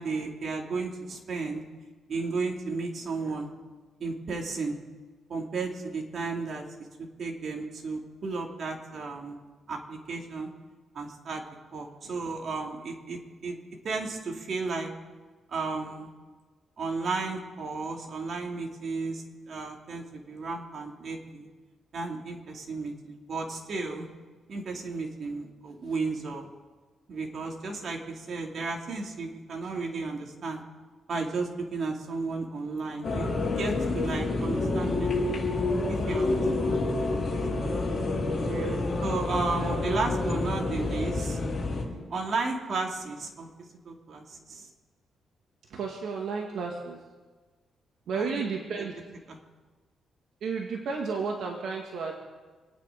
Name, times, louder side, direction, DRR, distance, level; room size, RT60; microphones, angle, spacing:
voice 1, 0.0-1.6 2.1-3.5 4.0-4.8 5.3-6.6 7.0-9.4 9.7-10.5 10.9-11.4 11.7-13.6 13.8-14.9 15.5-16.1 16.8-21.5 21.9-24.1 24.5-26.5 27.1-30.6 31.1-35.1 35.9-37.6 39.0-41.4 42.1-43.5 43.8-44.7 48.1-48.5 48.8-48.9 49.3-49.4, right 3 dB, 50° right, 0 dB, 2.9 m, -34 dB
sound 1, 33.0-41.8, left 2 dB, 35° left, 4.8 m, -28 dB
voice 2, 38.4-38.9 39.6-40.0 45.7-47.0 48.1-49.0 50.4-52.2, right 5 dB, 70° right, 1 dB, 2.0 m, -33 dB
27.0 x 9.7 x 5.3 m, 1.3 s
cardioid pair, 130°, 0 cm